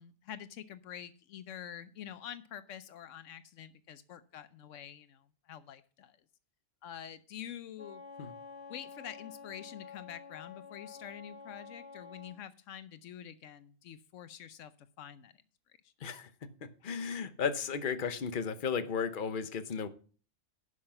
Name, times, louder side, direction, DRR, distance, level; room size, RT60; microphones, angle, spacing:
voice 1, 0.0-6.2 6.8-8.0 8.7-15.4 15.8-15.9, left 9 dB, 80° left, 13 dB, 1.0 m, -47 dB
Wind instrument woodwind instrument, 7.8-12.4, left 6 dB, 10° right, 1.9 m, -49 dB
voice 2, 16.0-19.9, left 6 dB, 45° left, 10 dB, 1.0 m, -35 dB
11.0 x 5.9 x 5.6 m, 0.40 s
omnidirectional pair, 1.3 m